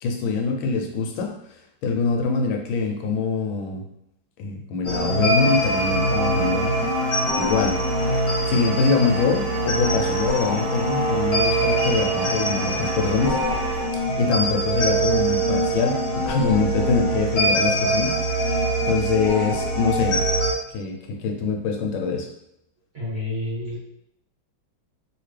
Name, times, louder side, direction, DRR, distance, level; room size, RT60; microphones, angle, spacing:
voice 1, 0.0-1.3 1.8-3.8 4.4-6.7 7.4-7.8 8.0-13.4 13.9-20.3 20.7-22.3, left 4 dB, 80° left, 2 dB, 1.4 m, -24 dB
sound 1, 4.8-20.5, right 1 dB, 55° left, 1.3 m, -23 dB
sound 2, 5.4-13.9, right 2 dB, 70° right, 1.1 m, -33 dB
voice 2, 22.9-23.8, left 2 dB, 45° right, -9 dB, 1.2 m, -29 dB
3.1 x 2.9 x 3.2 m, 0.77 s
omnidirectional pair, 2.2 m